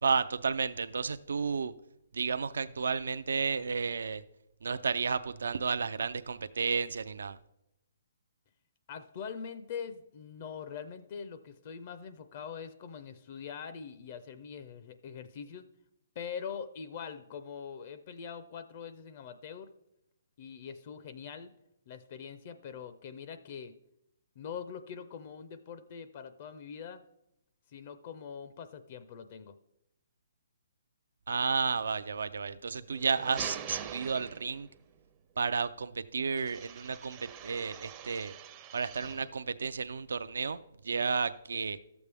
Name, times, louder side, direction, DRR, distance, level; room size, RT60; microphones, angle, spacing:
voice 1, 0.0-1.7 2.1-4.2 4.6-7.4 31.3-34.7 35.4-38.3 38.7-40.6 40.8-41.8, right 5 dB, 80° right, 12 dB, 0.4 m, -32 dB
voice 2, 8.9-15.6 16.2-19.7 20.4-21.5 21.9-23.7 24.4-27.0 27.7-29.5, left 7 dB, 45° left, 11 dB, 0.5 m, -43 dB
sound 1, 32.9-34.8 36.4-39.4, right 9 dB, 25° right, 0.5 m, -44 dB
12.0 x 7.0 x 3.4 m, 0.84 s
hypercardioid pair, 150°, 0 cm